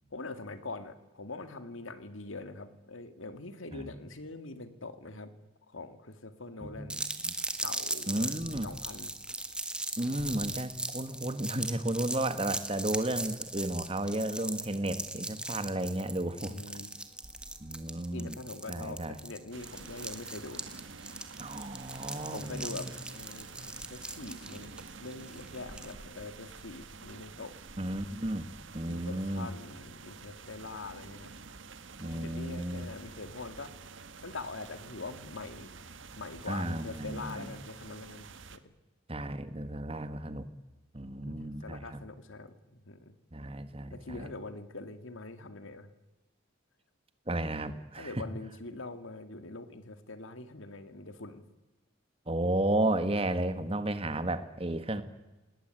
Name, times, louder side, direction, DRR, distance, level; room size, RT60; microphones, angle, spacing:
voice 1, 0.1-7.0 7.6-9.1 16.5-16.9 18.1-20.6 22.3-24.7 25.0-27.5 28.9-31.3 32.0-33.7 34.2-35.7 36.2-38.6 41.2-43.1 43.9-45.9 48.0-51.4, left 3 dB, 85° left, 10 dB, 2.2 m, -43 dB
voice 2, 6.6-7.3 8.1-8.7 10.0-16.6 17.6-18.4 18.7-19.2 21.4-22.9 23.6-23.7 27.8-29.5 32.0-32.9 36.5-37.5 39.1-40.5 40.9-42.0 43.3-44.3 47.3-48.2 52.3-55.0, right 1 dB, 30° right, 11 dB, 1.6 m, -33 dB
sound 1, 6.9-25.9, right 2 dB, 5° right, 1.6 m, -39 dB
sound 2, 19.5-38.6, right 4 dB, 75° right, 1.5 m, -49 dB
29.0 x 19.0 x 9.2 m, 1.1 s
head